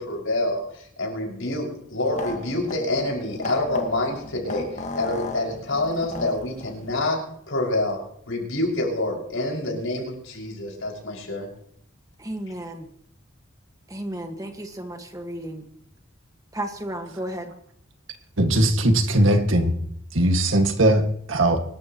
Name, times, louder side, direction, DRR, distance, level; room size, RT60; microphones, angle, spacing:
voice 1, 0.0-4.6 5.0-7.2 7.5-8.0 8.3-11.5, left 2 dB, 80° left, -1 dB, 5.7 m, -27 dB
sound 1, 2.0-7.0, left 2 dB, 35° left, 1.6 m, -36 dB
voice 2, 12.2-12.9 13.9-15.6 16.5-17.5, right 1 dB, 15° right, 5 dB, 1.5 m, -33 dB
voice 3, 18.4-19.7 20.1-21.6, right 1 dB, 75° right, 5 dB, 1.8 m, -19 dB
24.5 x 13.0 x 3.0 m, 0.70 s
head